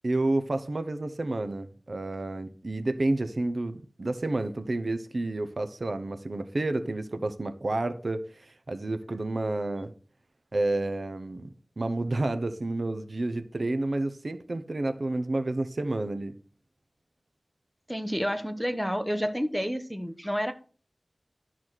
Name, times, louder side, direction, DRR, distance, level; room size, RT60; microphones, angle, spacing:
voice 1, 0.0-9.9 10.5-11.5 11.8-16.4, right 2 dB, 65° right, 0.8 m, -30 dB
voice 2, 17.9-20.5, equal, ahead, 1.1 m, -29 dB
12.5 x 4.1 x 6.3 m
wide cardioid pair, 65°, 0 cm